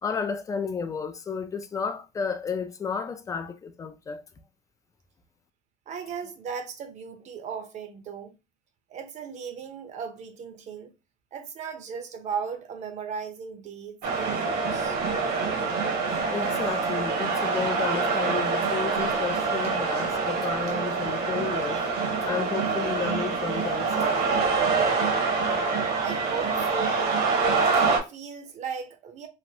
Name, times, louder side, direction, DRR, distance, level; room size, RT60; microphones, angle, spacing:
voice 1, 0.0-4.2 16.3-21.8 22.2-24.3, left 5 dB, 20° left, 0.3 m, -32 dB
voice 2, 5.9-8.4 8.9-10.9 11.3-15.0 26.0-27.2 27.9-29.3, right 6 dB, 45° right, 0.6 m, -37 dB
sound 1, 14.0-28.0, right 4 dB, 65° right, 1.0 m, -26 dB
3.1 x 2.5 x 2.6 m
cardioid pair, 150°, 16 cm